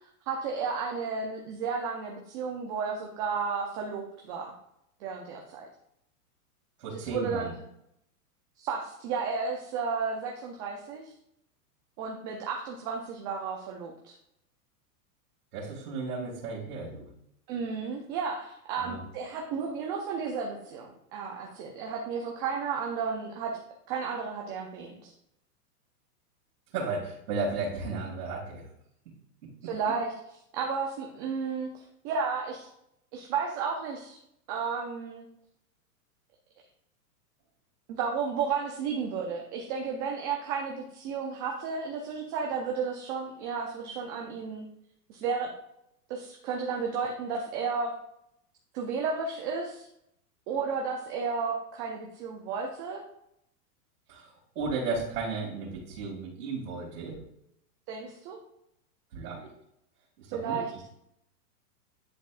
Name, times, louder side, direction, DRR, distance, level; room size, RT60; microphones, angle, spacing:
voice 1, 0.3-4.5 5.0-5.7 6.9-7.5 8.6-11.1 12.0-14.2 17.5-23.5 23.9-25.1 29.6-30.1 30.5-32.7 33.1-34.2 34.5-35.3 37.9-44.7 45.1-45.5 46.1-47.9 48.7-49.9 50.5-53.0 57.9-58.4 60.3-60.7, right 5 dB, 25° right, 0 dB, 0.5 m, -33 dB
voice 2, 6.8-7.5 15.5-17.1 18.8-19.0 26.7-28.6 29.6-29.9 54.1-57.2 59.1-59.5 60.2-60.6, right 4 dB, 70° right, -7 dB, 2.7 m, -34 dB
10.0 x 4.4 x 2.5 m, 0.77 s
supercardioid pair, 155°, 47 cm